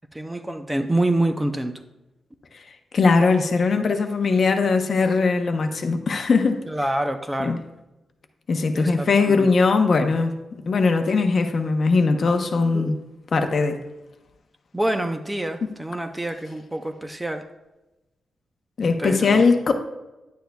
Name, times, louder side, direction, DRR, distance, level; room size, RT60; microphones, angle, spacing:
voice 1, 0.1-1.7 6.7-7.6 8.7-9.5 12.7-13.0 14.7-17.4 19.0-19.4, right 1 dB, 10° right, 7 dB, 0.5 m, -26 dB
voice 2, 2.9-6.6 7.4-7.6 8.5-10.3 10.7-13.0 13.3-13.8 18.8-19.7, left 4 dB, 45° left, 6 dB, 0.8 m, -20 dB
10.5 x 9.2 x 2.3 m, 1.0 s
wide cardioid pair, 140°, 0 cm